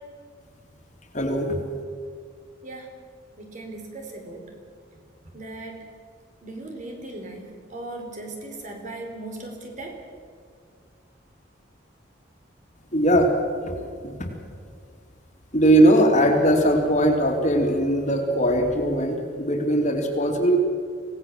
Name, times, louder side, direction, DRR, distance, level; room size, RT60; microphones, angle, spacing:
voice 1, 1.1-1.6 12.9-13.3 13.6-14.2 15.5-20.6, right 1 dB, 40° left, 3 dB, 2.8 m, -20 dB
voice 2, 3.4-4.5 5.3-5.8 6.4-10.0, right 2 dB, 40° right, 2 dB, 4.3 m, -38 dB
26.0 x 18.0 x 7.5 m, 2.1 s
head